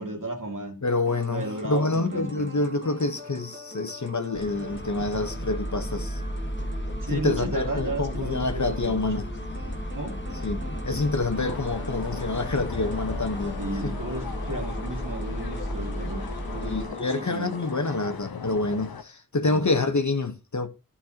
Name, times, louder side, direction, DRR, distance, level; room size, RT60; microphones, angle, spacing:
voice 1, 0.0-0.8 1.3-2.5 7.0-9.1 9.9-10.2 13.6-16.9 17.1-17.5 19.4-19.7, right 2 dB, 60° right, 2.2 m, -34 dB
voice 2, 0.8-6.2 7.1-9.3 10.4-10.6 10.8-13.9 16.6-20.7, left 3 dB, 55° left, 1.1 m, -27 dB
sound 1, 1.0-18.0, left 1 dB, 30° right, 1.7 m, -44 dB
sound 2, 4.3-16.9, equal, 30° left, 1.4 m, -33 dB
sound 3, 11.3-19.0, left 6 dB, 85° left, 0.8 m, -40 dB
13.0 x 5.7 x 2.8 m
wide cardioid pair, 55°, 36 cm